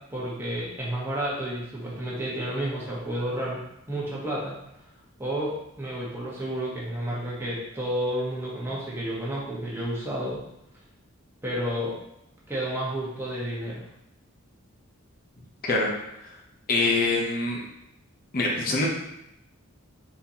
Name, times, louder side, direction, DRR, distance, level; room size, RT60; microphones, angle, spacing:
voice 1, 0.0-3.6 3.9-4.5 5.2-10.4 11.4-12.0 12.5-13.8, right 1 dB, 10° right, -6 dB, 1.1 m, -31 dB
voice 2, 16.7-17.6 18.3-18.9, left 3 dB, 40° left, -1 dB, 0.7 m, -24 dB
4.2 x 4.1 x 2.8 m, 0.83 s
head